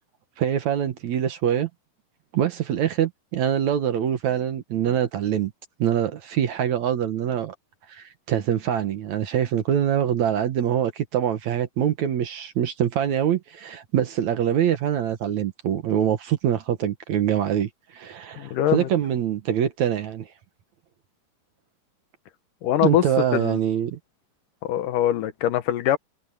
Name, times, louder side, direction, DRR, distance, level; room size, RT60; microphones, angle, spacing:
voice 1, 0.4-1.7 2.3-5.5 5.8-7.5 7.9-20.3 22.8-24.0, right 9 dB, 65° right, 2.3 m, -24 dB
voice 2, 18.4-18.9 22.6-23.0 23.3-23.6 24.6-26.0, left 11 dB, 75° left, 2.5 m, -23 dB
omnidirectional pair, 4.0 m